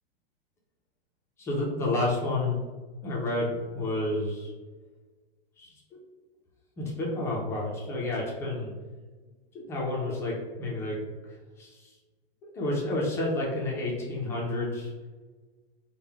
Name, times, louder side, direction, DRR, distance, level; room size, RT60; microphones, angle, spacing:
voice 1, 1.4-2.6 3.0-4.5 5.6-5.7 6.8-8.7 9.5-11.0 11.6-11.9 12.5-14.9, left 2 dB, 10° left, -3 dB, 0.3 m, -30 dB
3.6 x 2.1 x 4.3 m, 1.3 s
hypercardioid pair, 150°, 32 cm